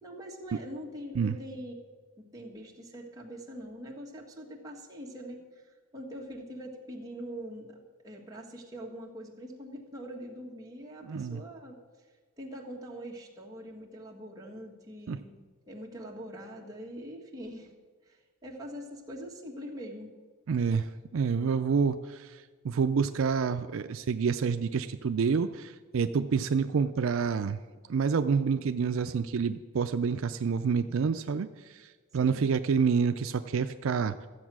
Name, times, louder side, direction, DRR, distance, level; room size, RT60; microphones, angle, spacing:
voice 1, 0.0-1.7 2.2-11.8 12.4-15.4 15.7-17.7 18.0-20.1 32.2-32.5, equal, 15° right, -2 dB, 1.5 m, -43 dB
voice 2, 11.0-11.4 15.1-15.2 20.5-27.6 27.9-34.1, right 5 dB, 70° right, 9 dB, 0.4 m, -28 dB
13.5 x 8.0 x 6.1 m, 1.4 s
head